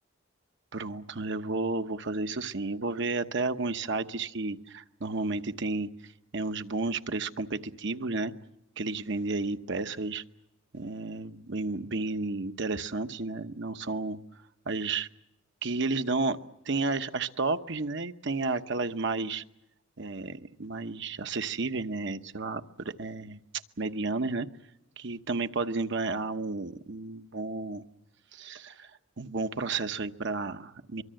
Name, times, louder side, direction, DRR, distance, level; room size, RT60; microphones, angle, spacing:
voice 1, 0.7-5.9 6.3-8.3 8.8-10.2 10.7-14.2 14.7-15.1 15.6-16.4 16.7-19.4 20.0-23.4 23.8-24.5 25.0-27.8 28.3-28.9 29.2-31.0, right 3 dB, 65° right, 9 dB, 1.0 m, -32 dB
24.0 x 24.0 x 7.7 m, 0.83 s
head